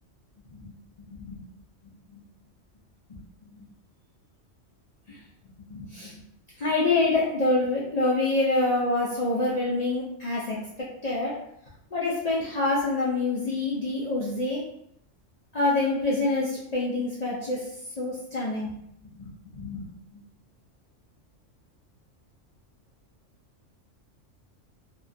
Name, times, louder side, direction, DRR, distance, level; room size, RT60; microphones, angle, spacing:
voice 1, 0.5-1.4 2.1-2.2 3.1-3.2 3.6-3.7 5.1-5.2 5.7-6.2 6.6-10.6 11.0-11.4 11.9-14.6 15.5-17.7 18.0-18.7 19.2-20.2, left 2 dB, 70° left, -7 dB, 0.3 m, -27 dB
2.3 x 2.1 x 2.5 m, 0.75 s
omnidirectional pair, 1.3 m